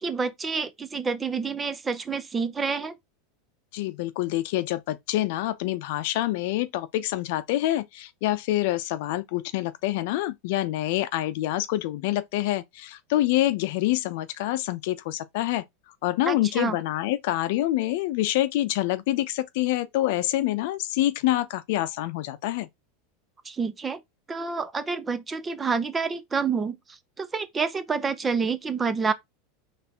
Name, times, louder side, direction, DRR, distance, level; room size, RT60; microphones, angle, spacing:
voice 1, 0.0-3.0 16.3-16.8 23.4-24.0 24.3-29.1, right 5 dB, 15° right, 0.5 m, -28 dB
voice 2, 3.7-15.6 16.0-22.7, left 15 dB, 65° left, 0.6 m, -26 dB
4.3 x 3.3 x 3.5 m
supercardioid pair, 145°, 0 cm